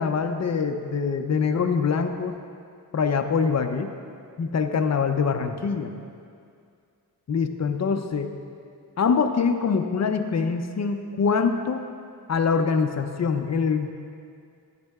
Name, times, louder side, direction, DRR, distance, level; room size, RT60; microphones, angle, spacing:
voice 1, 0.0-2.3 2.9-3.9 4.4-5.9 7.3-8.3 9.0-11.8 12.3-13.9, left 5 dB, 45° left, 6 dB, 0.6 m, -24 dB
12.5 x 9.4 x 2.4 m, 2.3 s
wide cardioid pair, 105°, 39 cm